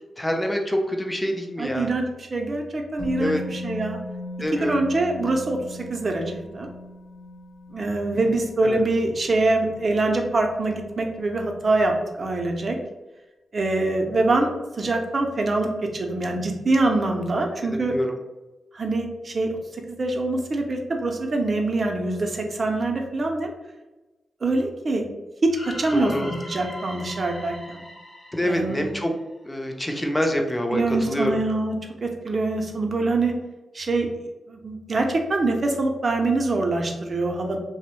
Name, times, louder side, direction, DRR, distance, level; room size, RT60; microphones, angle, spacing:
voice 1, 0.2-1.9 3.2-3.4 4.4-4.8 8.6-8.8 17.6-18.2 25.9-26.3 28.3-29.1 29.4-31.3, equal, 15° left, 3 dB, 0.5 m, -26 dB
voice 2, 1.6-4.0 4.6-6.7 7.7-11.9 12.2-12.8 13.5-15.7 15.9-17.9 18.7-19.6 19.9-23.5 24.4-25.0 25.6-27.8 28.4-28.9 30.7-33.3 33.7-34.1 34.5-37.6, right 2 dB, 50° right, 3 dB, 0.5 m, -24 dB
Musical instrument, 3.0-10.9 11.2-11.3, left 1 dB, 85° left, 0.6 m, -38 dB
sound 1, 25.5-29.6, left 1 dB, 45° left, 0.7 m, -41 dB
2.6 x 2.0 x 3.0 m, 1.1 s
cardioid pair, 50°, 0 cm